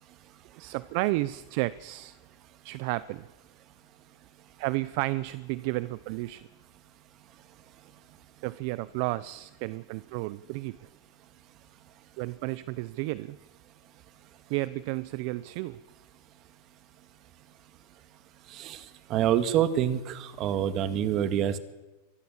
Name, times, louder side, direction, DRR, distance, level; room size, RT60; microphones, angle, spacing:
voice 1, 0.6-2.2 2.6-3.3 4.6-6.5 8.4-10.8 12.2-13.4 14.5-15.8, right 20 dB, 55° right, 17 dB, 0.7 m, -32 dB
voice 2, 19.1-21.6, right 10 dB, 35° right, 11 dB, 1.9 m, -26 dB
25.0 x 19.5 x 7.4 m, 1.1 s
supercardioid pair, 140°, 0 cm